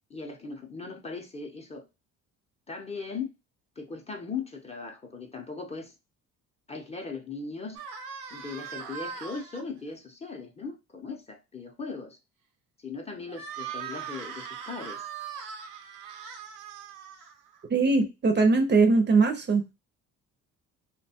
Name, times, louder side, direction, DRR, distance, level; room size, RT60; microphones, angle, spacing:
voice 1, 0.1-1.9 2.7-3.3 3.8-5.9 6.7-7.8 8.3-12.2 12.8-15.1 17.9-18.1, left 4 dB, 20° left, 3 dB, 0.6 m, -38 dB
sound 1, 7.8-9.6 13.3-17.6, right 7 dB, 90° right, 0.7 m, -40 dB
voice 2, 17.7-19.6, right 4 dB, 35° right, 6 dB, 0.5 m, -21 dB
2.6 x 2.2 x 2.7 m, 0.26 s
cardioid pair, 100°, 31 cm